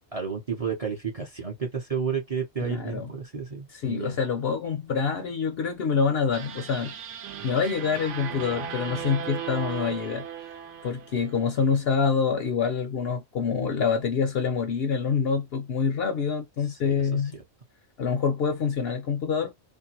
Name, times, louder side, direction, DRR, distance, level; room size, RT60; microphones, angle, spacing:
voice 1, 0.1-4.2 16.8-17.4, right 6 dB, 35° right, 0.6 m, -32 dB
voice 2, 2.6-3.1 3.7-7.0 7.4-10.2 10.8-17.4 18.0-19.5, left 6 dB, 65° left, 0.7 m, -26 dB
sound 1, 6.3-11.6, right 8 dB, 70° right, 0.9 m, -37 dB
2.5 x 2.1 x 2.8 m
omnidirectional pair, 1.4 m